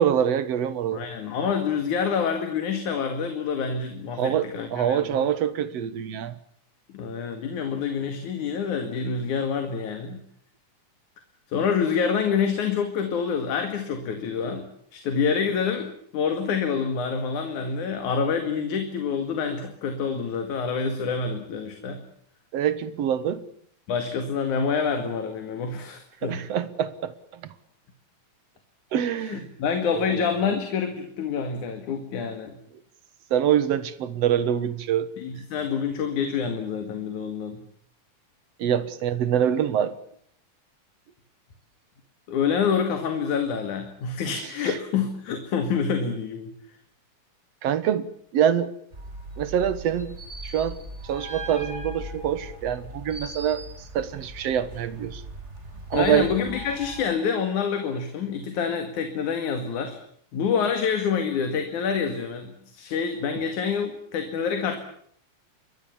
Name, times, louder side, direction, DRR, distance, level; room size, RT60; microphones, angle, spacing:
voice 1, 0.0-1.1 4.2-6.3 22.5-23.4 26.2-27.1 28.9-29.5 29.8-30.2 33.3-35.1 38.6-40.0 44.7-44.8 47.6-48.7 49.4-50.1 50.4-50.8 51.0-53.6 53.9-55.2 55.9-56.3, right 9 dB, 60° right, 15 dB, 2.1 m, -25 dB
voice 2, 0.9-5.3 6.9-10.2 11.5-22.0 23.9-26.4 29.2-32.6 35.2-37.6 42.3-46.5 55.9-60.0 60.3-64.8, left 6 dB, 75° left, 6 dB, 3.4 m, -27 dB
sound 1, 48.9-57.1, right 1 dB, 20° right, 4.8 m, -39 dB
27.5 x 22.0 x 7.2 m, 0.64 s
omnidirectional pair, 3.5 m